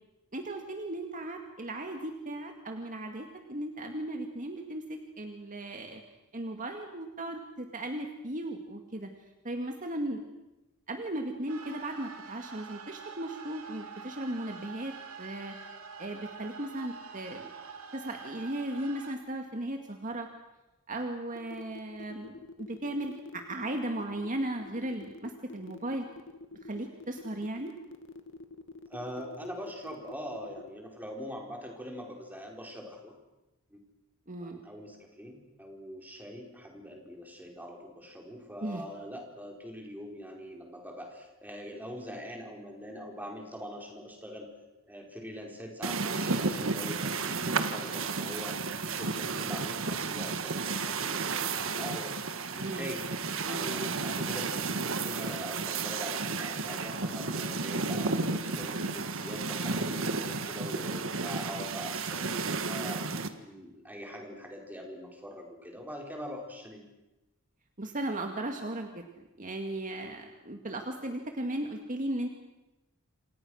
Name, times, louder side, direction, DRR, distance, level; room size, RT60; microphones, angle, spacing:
voice 1, 0.3-6.0 6.3-9.1 9.4-10.2 10.9-15.5 16.0-17.5 17.9-20.3 20.9-26.1 26.6-27.7 34.3-34.6 38.6-38.8 52.6-52.9 53.4-53.7 62.9-63.1 67.8-72.3, right 1 dB, 40° right, 4 dB, 2.0 m, -36 dB
sound 1, 11.5-19.2, right 5 dB, 90° right, 2.8 m, -46 dB
sound 2, 21.3-30.7, left 3 dB, 60° left, 2.2 m, -47 dB
voice 2, 28.9-33.1 33.7-33.8 34.4-44.5 44.9-53.0 53.5-63.0 63.4-66.8, equal, 10° right, 1 dB, 4.7 m, -43 dB
sound 3, 45.8-63.3, right 4 dB, 65° right, 1.7 m, -32 dB
27.5 x 27.5 x 6.4 m, 1.0 s
head